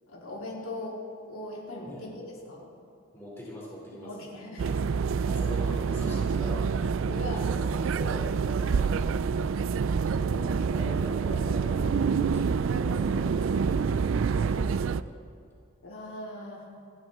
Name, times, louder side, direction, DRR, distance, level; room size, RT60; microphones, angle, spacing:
voice 1, 0.1-1.0 1.2-2.7 4.0-4.8 7.1-7.5 8.6-8.9 10.7-10.9 15.8-16.7, left 1 dB, 75° left, -4 dB, 3.9 m, -40 dB
voice 2, 3.1-4.3 5.2-6.8 7.5-8.3 8.7-9.1 10.2-15.2, equal, 10° left, -4 dB, 3.0 m, -42 dB
sound 1, 4.6-15.0, right 5 dB, 65° right, 0.3 m, -27 dB
28.0 x 11.0 x 3.6 m, 2.3 s
head